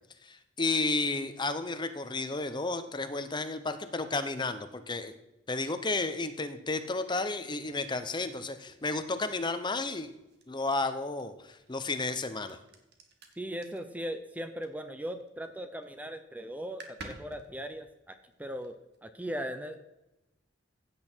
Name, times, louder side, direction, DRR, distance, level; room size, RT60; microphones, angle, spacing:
voice 1, 0.2-5.1 5.5-10.1 10.5-12.6, left 3 dB, 25° left, 9 dB, 0.8 m, -32 dB
sound 1, 7.6-15.3 15.6-16.0 16.3-16.4 16.6-19.0, right 2 dB, 60° right, 1.8 m, -53 dB
voice 2, 13.4-18.8 19.0-19.8, equal, 10° right, 8 dB, 0.7 m, -38 dB
15.5 x 8.7 x 4.5 m, 0.94 s
head